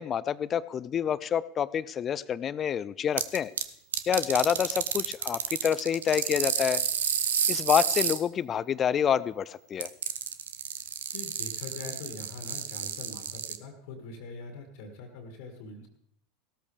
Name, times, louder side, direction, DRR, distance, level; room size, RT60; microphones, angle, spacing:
voice 1, 0.0-3.5 4.1-6.8 7.5-9.9, left 8 dB, 30° left, 19 dB, 0.5 m, -27 dB
sound 1, 3.2-3.6 3.9-8.2 9.8-13.6, right 8 dB, 70° right, 0.8 m, -30 dB
voice 2, 11.1-15.9, left 3 dB, 55° left, 4 dB, 2.1 m, -43 dB
17.0 x 13.0 x 3.4 m, 0.71 s
figure-of-eight pair, 80°, 0 cm